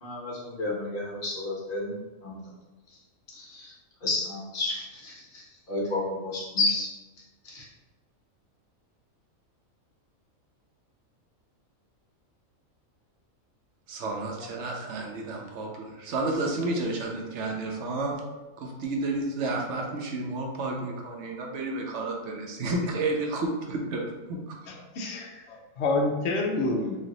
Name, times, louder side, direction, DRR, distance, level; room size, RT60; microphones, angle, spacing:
voice 1, 0.0-2.4 3.4-3.7 4.0-6.9 7.4-7.6, left 2 dB, 45° left, -5 dB, 1.2 m, -31 dB
voice 2, 13.9-18.2 18.6-24.6, right 2 dB, 65° right, 0 dB, 0.9 m, -31 dB
voice 3, 24.7-27.0, left 2 dB, 65° left, 0 dB, 0.8 m, -28 dB
3.1 x 2.5 x 3.8 m, 1.1 s
omnidirectional pair, 1.4 m